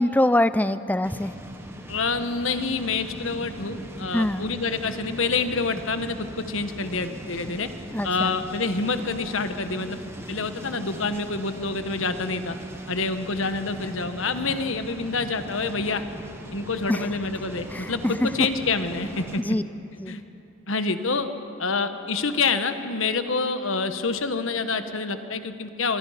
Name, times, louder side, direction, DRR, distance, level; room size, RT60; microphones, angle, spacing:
voice 1, 0.0-1.3 4.1-4.5 7.9-8.3 16.9-17.1 17.7-18.5 19.4-19.6 20.0-20.2, left 1 dB, 10° left, 14 dB, 0.4 m, -24 dB
sound 1, 1.0-19.4, equal, 10° right, 1.3 m, -40 dB
voice 2, 1.9-7.7 8.0-10.0 10.3-12.6 12.9-16.0 16.5-19.4 20.1-20.2 20.7-21.3 21.6-26.0, left 4 dB, 65° left, 9 dB, 1.3 m, -27 dB
25.0 x 24.0 x 5.8 m, 2.9 s
head